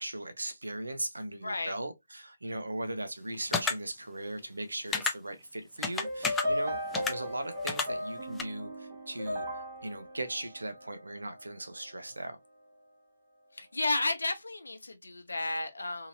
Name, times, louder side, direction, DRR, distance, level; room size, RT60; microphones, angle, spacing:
voice 1, 0.0-12.4, right 1 dB, 75° right, 0.7 m, -38 dB
voice 2, 1.4-1.7 13.5-16.1, left 2 dB, 70° left, 0.7 m, -32 dB
sound 1, 3.5-3.7 4.9-5.1 5.8-6.4 6.9-7.1 7.7-7.9 8.4-8.5, left 4 dB, 10° left, 0.4 m, -29 dB
sound 2, 6.0-11.4, left 1 dB, 30° right, 1.0 m, -36 dB
2.8 x 2.8 x 2.6 m
figure-of-eight pair, 140°, 0 cm